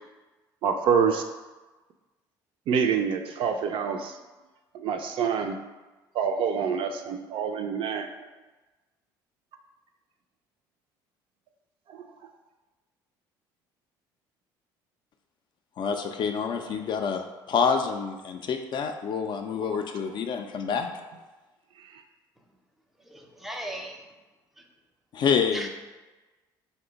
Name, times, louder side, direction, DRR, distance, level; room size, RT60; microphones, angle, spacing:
voice 1, 0.6-1.2 2.7-4.1 4.8-5.6 6.1-8.1, right 6 dB, 60° right, 5 dB, 0.3 m, -26 dB
voice 2, 15.8-20.9 25.1-25.7, left 6 dB, 50° left, 5 dB, 0.3 m, -27 dB
voice 3, 23.1-24.0 25.5-25.7, right 1 dB, ahead, 1 dB, 0.5 m, -37 dB
2.7 x 2.1 x 3.8 m, 1.2 s
supercardioid pair, 70°, 10 cm